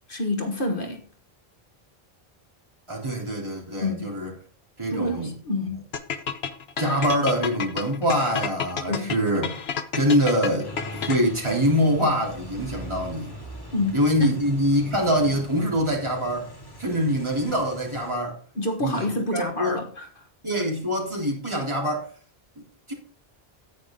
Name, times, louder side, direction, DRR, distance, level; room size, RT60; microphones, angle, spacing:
voice 1, 0.1-1.1 3.8-4.2 4.9-5.9 8.9-9.1 13.7-14.3 18.5-20.3, left 1 dB, 55° left, 1.6 m, -28 dB
voice 2, 2.9-4.3 4.8-5.3 6.8-9.6 9.9-13.3 13.9-16.5 16.8-18.4 18.8-19.8 20.4-22.1 22.6-22.9, equal, 25° right, 3.5 m, -24 dB
sound 1, 5.9-11.5, left 6 dB, 75° left, 1.2 m, -30 dB
sound 2, 10.6-18.1, equal, 20° left, 2.3 m, -41 dB
10.0 x 9.0 x 3.7 m
omnidirectional pair, 1.1 m